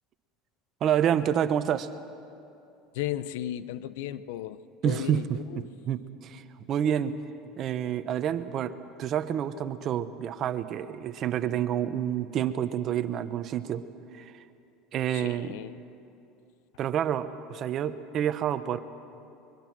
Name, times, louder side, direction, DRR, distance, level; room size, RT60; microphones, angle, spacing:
voice 1, 0.8-1.9 4.8-7.2 7.6-13.8 14.1-14.3 14.9-15.5 16.8-18.8, right 9 dB, 45° right, 11 dB, 1.0 m, -28 dB
voice 2, 2.9-5.7 15.1-15.8, left 12 dB, 85° left, 15 dB, 0.7 m, -35 dB
24.0 x 22.5 x 6.1 m, 2.7 s
supercardioid pair, 120°, 0 cm